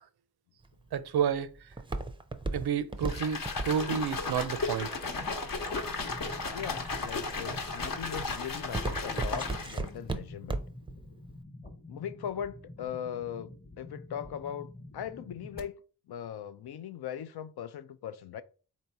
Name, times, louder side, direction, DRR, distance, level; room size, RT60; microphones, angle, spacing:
Walk footsteps, 0.6-5.8 6.4-6.8 7.3-7.7 8.0-10.9 11.2-11.3, right 2 dB, 15° right, 0.4 m, -35 dB
voice 1, 0.9-1.5 2.5-4.9, right 8 dB, 75° right, 0.5 m, -30 dB
sound 1, 3.0-9.9, left 3 dB, 60° left, 1.0 m, -35 dB
sound 2, 5.6-15.6, left 2 dB, 25° left, 1.0 m, -48 dB
voice 2, 6.5-10.6 11.9-13.5 13.8-15.7 16.1-18.4, left 9 dB, 75° left, 0.5 m, -39 dB
4.0 x 2.8 x 4.5 m
cardioid pair, 75°, 39 cm